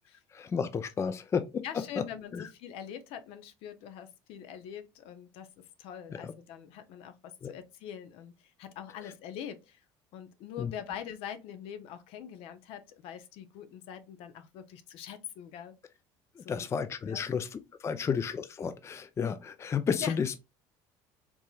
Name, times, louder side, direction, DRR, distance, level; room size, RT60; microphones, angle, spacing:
voice 1, 0.3-1.6 2.0-2.1 2.3-2.5 6.1-6.3 7.4-7.5 10.6-10.7 16.4-20.3, left 6 dB, 25° left, 0.4 m, -32 dB
voice 2, 1.6-5.5 5.8-9.8 10.1-15.8 16.4-16.7 17.1-17.3 17.9-18.1 20.0-20.2, left 9 dB, 70° left, 0.6 m, -43 dB
4.6 x 2.7 x 2.3 m
supercardioid pair, 100°, 10 cm